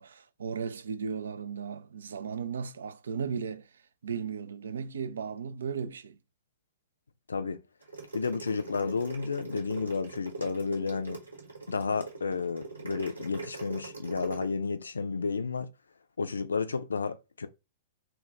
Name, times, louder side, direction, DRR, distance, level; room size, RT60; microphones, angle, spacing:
voice 1, 0.0-3.7 4.0-6.2, right 6 dB, 70° right, 0.3 m, -36 dB
sound 1, 7.8-14.4, right 4 dB, 90° right, 1.2 m, -42 dB
voice 2, 8.1-11.2 11.7-15.7 16.2-17.5, left 4 dB, 80° left, 0.4 m, -31 dB
2.2 x 2.2 x 3.9 m
figure-of-eight pair, 105°, 0 cm